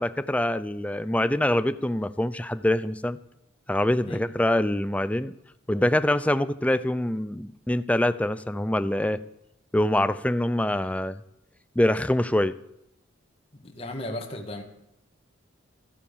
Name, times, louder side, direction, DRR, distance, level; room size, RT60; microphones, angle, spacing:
voice 1, 0.0-3.2 3.7-5.3 5.7-9.2 9.7-11.2 11.8-12.6, left 1 dB, 5° left, 13 dB, 0.5 m, -24 dB
voice 2, 13.5-14.6, left 1 dB, 30° left, 2 dB, 2.1 m, -35 dB
14.0 x 9.5 x 7.2 m, 0.83 s
head